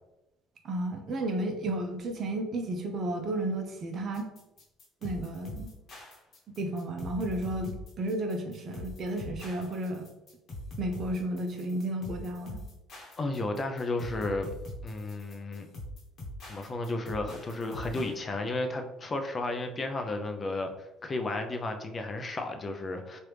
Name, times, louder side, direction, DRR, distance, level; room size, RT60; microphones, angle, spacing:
voice 1, 0.6-4.3 5.0-5.7 6.6-10.1 10.8-12.6, right 1 dB, 50° right, 4 dB, 0.6 m, -33 dB
sound 1, 4.1-18.1, left 1 dB, 50° left, 1.1 m, -43 dB
voice 2, 13.2-14.5 14.8-15.7 16.5-23.2, left 2 dB, 35° left, 6 dB, 0.5 m, -33 dB
3.1 x 2.5 x 3.3 m, 0.94 s
supercardioid pair, 75°, 0 cm